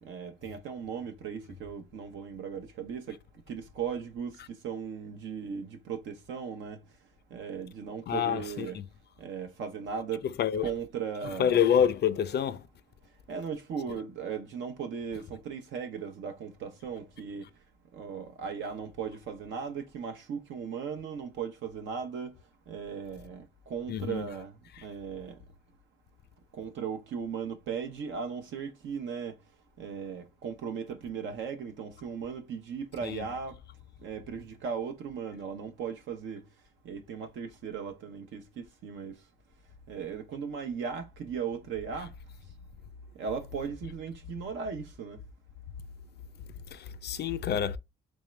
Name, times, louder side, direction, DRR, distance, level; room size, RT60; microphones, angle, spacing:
voice 1, 0.0-3.2 3.5-6.8 7.3-8.8 9.2-10.3 10.6-11.6 13.3-17.5 17.9-22.4 22.7-24.6 24.8-25.4 26.5-29.4 29.8-33.6 34.0-36.4 36.8-39.2 39.9-42.1 43.1-45.2, right 6 dB, 75° right, 0.7 m, -37 dB
voice 2, 8.1-8.8 10.4-10.7 11.4-12.6 23.9-24.2 33.0-33.2 46.7-47.8, left 8 dB, 55° left, 0.4 m, -27 dB
3.6 x 3.2 x 3.2 m
cardioid pair, 90°, 20 cm